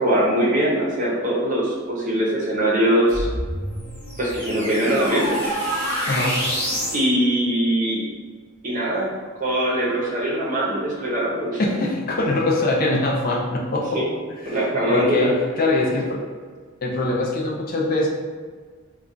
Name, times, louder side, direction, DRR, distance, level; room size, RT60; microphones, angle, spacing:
voice 1, 0.0-3.3 4.2-5.4 6.9-8.0 8.6-9.1 9.4-11.7 13.9-14.1 14.4-15.3, right 1 dB, 40° right, -5 dB, 0.7 m, -22 dB
sound 1, 3.1-7.0, equal, 10° left, 1.0 m, -27 dB
voice 2, 6.1-6.4 11.6-14.0 14.5-14.6 14.9-16.2 16.8-18.1, left 2 dB, 45° left, -2 dB, 0.4 m, -22 dB
2.3 x 2.3 x 3.7 m, 1.6 s
head